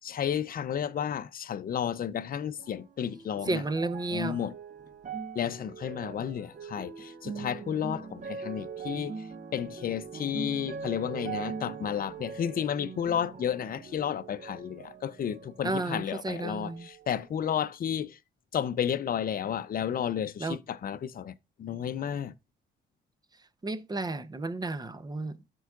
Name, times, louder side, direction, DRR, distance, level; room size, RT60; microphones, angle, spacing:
voice 1, 0.0-3.7 4.1-4.6 5.3-9.3 9.5-18.2 18.5-21.3 21.6-22.3, left 9 dB, 45° left, 0.6 m, -32 dB
sound 1, 2.6-16.1 16.4-17.3 18.0-18.1, right 5 dB, 40° right, 1.2 m, -42 dB
voice 2, 3.5-4.4 15.6-16.9 20.4-20.6 23.6-25.4, right 2 dB, 20° right, 0.8 m, -32 dB
12.5 x 4.6 x 2.4 m
cardioid pair, 90°, 20 cm